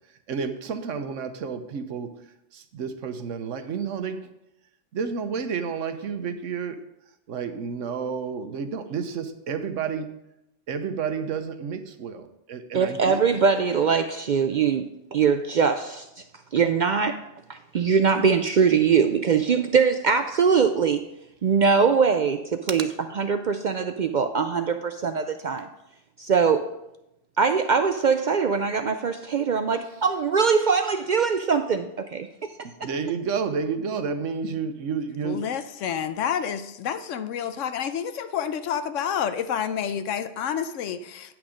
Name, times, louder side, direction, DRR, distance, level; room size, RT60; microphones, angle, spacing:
voice 1, 0.3-2.1 2.5-4.3 4.9-6.8 7.3-10.2 10.7-13.4 32.8-35.4, right 6 dB, 85° right, 9 dB, 1.2 m, -30 dB
voice 2, 12.7-14.8 15.1-16.0 16.5-17.2 17.5-21.0 21.4-22.9 23.2-25.7 26.2-26.7 27.4-32.3, right 6 dB, 60° right, 8 dB, 0.5 m, -22 dB
voice 3, 35.2-41.4, left 8 dB, 80° left, 11 dB, 1.0 m, -29 dB
9.5 x 6.1 x 5.0 m, 0.86 s
omnidirectional pair, 1.3 m